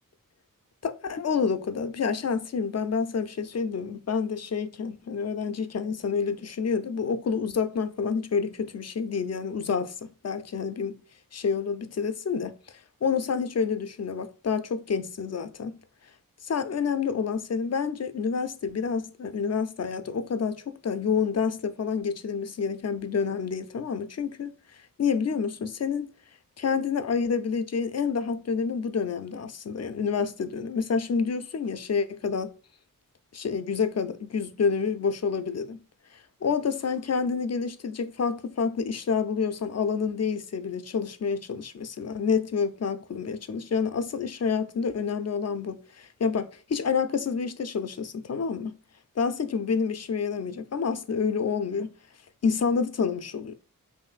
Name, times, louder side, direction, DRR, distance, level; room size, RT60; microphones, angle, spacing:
voice 1, 0.8-11.0 11.3-15.8 16.4-26.1 26.6-32.5 33.3-35.8 36.4-48.8 49.2-51.9 52.4-53.5, left 5 dB, 50° left, 0.4 m, -28 dB
5.7 x 2.6 x 2.4 m
wide cardioid pair, 85°, 34 cm